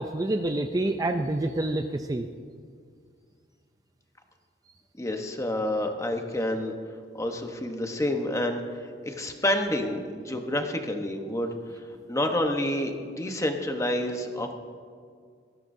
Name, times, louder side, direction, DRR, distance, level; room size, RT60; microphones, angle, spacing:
voice 1, 0.0-2.3, right 1 dB, 20° right, 6 dB, 0.4 m, -27 dB
voice 2, 5.0-6.7 7.1-11.5 12.1-14.5, left 1 dB, 15° left, 4 dB, 1.0 m, -28 dB
19.0 x 14.5 x 2.7 m, 2.1 s
head